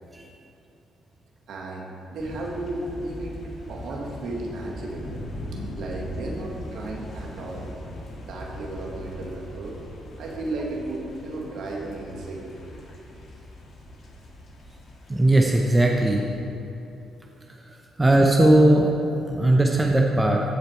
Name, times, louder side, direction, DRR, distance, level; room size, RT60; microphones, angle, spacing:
voice 1, 1.5-5.1 5.5-7.7 8.3-9.8 10.2-12.5, right 2 dB, 75° right, -1 dB, 1.7 m, -34 dB
sound 1, 2.2-16.4, left 1 dB, 55° left, 1.8 m, -40 dB
voice 2, 15.1-16.2 18.0-20.4, right 1 dB, 15° right, 0 dB, 0.8 m, -18 dB
15.0 x 5.1 x 4.5 m, 3.0 s
cardioid pair, 90°, 0 cm